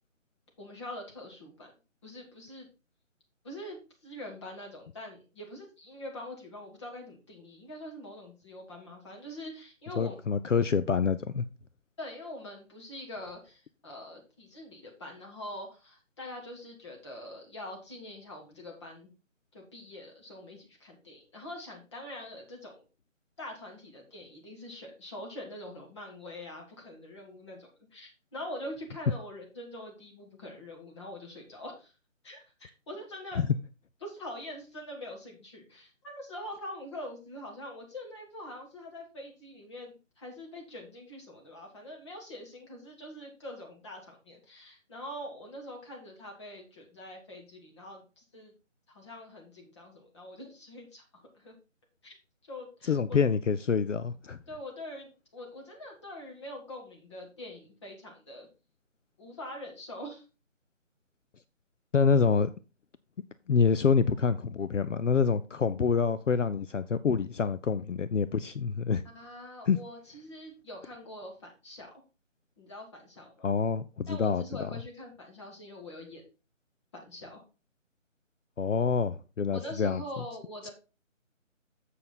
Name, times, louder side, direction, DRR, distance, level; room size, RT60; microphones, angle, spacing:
voice 1, 0.6-1.7 2.0-2.7 3.4-10.2 12.0-19.1 19.5-22.8 23.4-31.9 32.2-33.5 34.0-48.5 48.9-51.6 52.0-52.1 52.5-53.2 54.5-58.5 59.2-60.2 69.1-71.9 72.6-73.5 74.1-76.2 76.9-77.4 79.5-80.7, left 1 dB, 20° left, 1.8 m, -44 dB
voice 2, 10.0-11.5 33.3-33.5 52.8-54.4 61.9-62.5 63.5-69.0 69.7-69.8 73.4-74.7 78.6-80.0 80.6-80.7, left 5 dB, 65° left, 0.6 m, -26 dB
7.4 x 6.4 x 4.0 m
figure-of-eight pair, 155°, 39 cm